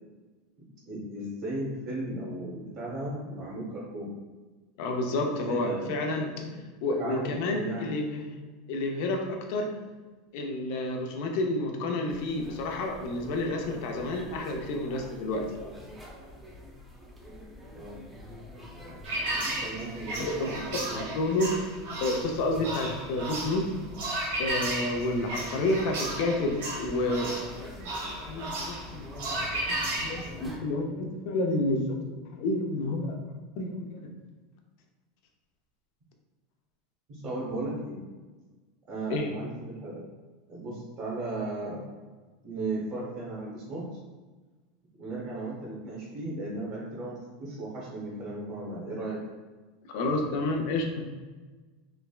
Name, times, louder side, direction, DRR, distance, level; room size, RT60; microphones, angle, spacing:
voice 1, 0.9-4.1 5.3-6.6 6.9-7.9 17.7-18.0 19.3-21.0 37.1-38.0 38.9-40.1 40.5-41.8 42.4-43.8 45.0-49.2, right 2 dB, 60° right, -6 dB, 1.0 m, -36 dB
voice 2, 4.8-6.3 6.8-8.3 8.7-9.7 10.3-15.5 19.5-19.6 20.2-20.5 20.9-21.5 22.0-23.6 24.4-27.3 28.2-29.1 29.7-31.8 32.3-33.1 33.6-34.1 39.1-39.3 49.9-51.1, left 2 dB, 65° left, 2 dB, 0.5 m, -30 dB
sound 1, 12.1-30.6, left 1 dB, 10° right, 0.5 m, -46 dB
sound 2, 19.0-30.3, right 1 dB, 75° right, 0.7 m, -34 dB
3.3 x 2.0 x 2.3 m, 1.3 s
supercardioid pair, 115°, 0 cm